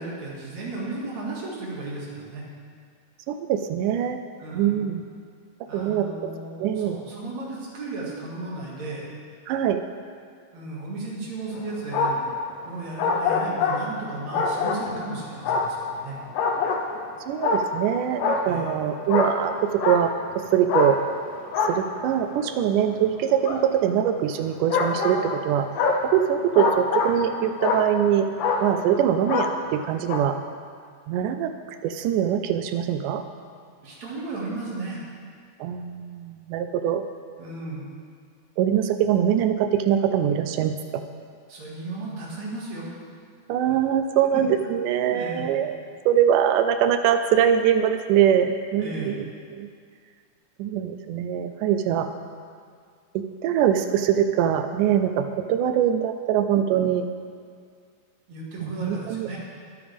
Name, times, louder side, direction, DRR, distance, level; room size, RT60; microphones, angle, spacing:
voice 1, 0.0-2.5 4.4-4.8 5.7-9.1 10.5-12.3 12.7-16.2 18.4-18.7 33.8-35.0 37.4-37.8 41.5-42.9 44.3-44.4 45.1-45.6 48.8-49.2 58.3-59.4, right 2 dB, 60° right, -5 dB, 3.3 m, -35 dB
voice 2, 3.3-4.2 4.5-5.0 5.7-6.3 6.6-7.0 9.5-9.8 17.3-21.0 21.7-25.7 26.0-28.3 28.6-30.4 31.1-31.5 31.8-33.2 35.6-37.0 38.6-41.0 43.5-45.8 46.1-49.3 49.5-49.7 50.6-52.1 53.1-57.1 58.6-59.3, right 9 dB, 85° right, 8 dB, 2.1 m, -23 dB
sound 1, 11.6-12.4 13.0-15.1 15.5-17.0 17.4-17.9 18.2-20.3 20.7-22.6 23.4-23.6 24.7-27.4 27.6-28.1 28.4-28.9 29.3-29.8 30.1-30.2, left 4 dB, 85° left, 2.5 m, -25 dB
21.5 x 8.7 x 3.5 m, 2.1 s
omnidirectional pair, 3.6 m